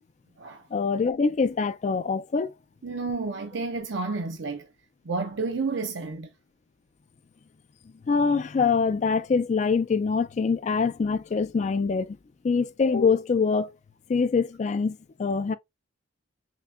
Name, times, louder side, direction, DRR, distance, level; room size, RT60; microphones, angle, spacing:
voice 1, 0.7-2.5 8.1-12.2 12.4-13.7 14.1-15.6, left 5 dB, 40° left, 0.3 m, -24 dB
voice 2, 2.8-4.7 5.0-6.3, right 4 dB, 65° right, 0.6 m, -30 dB
5.7 x 2.2 x 2.4 m
head